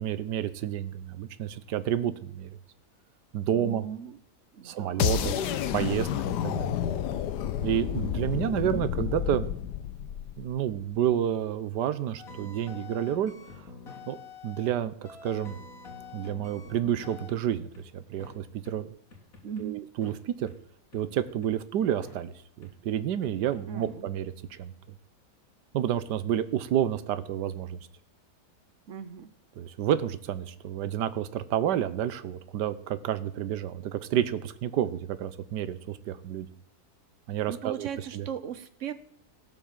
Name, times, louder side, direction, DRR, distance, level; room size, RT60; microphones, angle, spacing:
voice 1, 0.0-2.5 3.3-3.9 4.6-5.3 5.7-6.7 7.6-9.5 10.4-13.3 14.1-14.2 14.4-14.9 15.2-15.6 16.1-18.9 19.6-20.5 20.9-24.7 25.7-27.9 29.6-36.5 37.3-37.9 38.1-38.3, right 10 dB, 80° right, 14 dB, 1.4 m, -30 dB
voice 2, 3.5-4.2 4.5-5.4 8.6-8.9 19.4-19.8 23.7-24.1 28.9-29.3 37.5-38.9, right 7 dB, 55° right, 13 dB, 1.1 m, -38 dB
sound 1, 5.0-11.0, left 10 dB, 80° left, 1.3 m, -30 dB
sound 2, 12.2-14.8 15.0-17.8 18.2-18.3 18.6-18.7 19.1-19.6 20.0-20.2 20.5-20.6 20.9-21.5 22.0-22.2 22.6-22.7 23.2-23.9, left 5 dB, 55° left, 2.7 m, -46 dB
17.5 x 6.0 x 7.4 m, 0.68 s
omnidirectional pair, 1.8 m